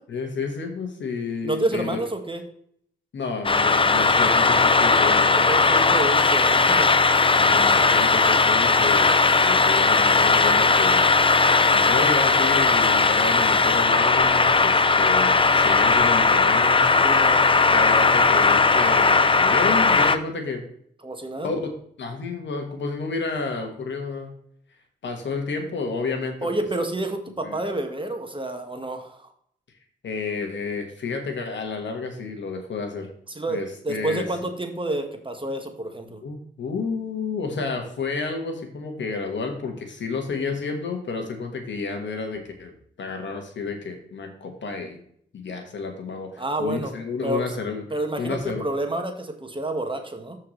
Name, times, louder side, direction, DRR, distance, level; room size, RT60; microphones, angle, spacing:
voice 1, 0.1-2.0 3.1-5.5 7.3-11.0 11.7-16.9 17.7-20.6 21.4-21.6 22.0-24.3 25.0-26.5 27.4-27.6 30.0-33.1 33.5-34.3 36.2-42.7 43.0-45.0 45.3-47.8 48.2-48.6, left 4 dB, 65° left, 4 dB, 1.7 m, -30 dB
voice 2, 1.4-2.4 5.3-7.0 17.0-17.4 21.0-21.5 26.4-29.3 33.3-36.2 46.4-46.9 47.2-47.5 47.9-50.4, right 2 dB, 25° right, 5 dB, 1.6 m, -29 dB
sound 1, 3.4-20.2, left 4 dB, 25° left, 0.7 m, -18 dB
13.5 x 4.7 x 3.3 m, 0.65 s
supercardioid pair, 40°, 20 cm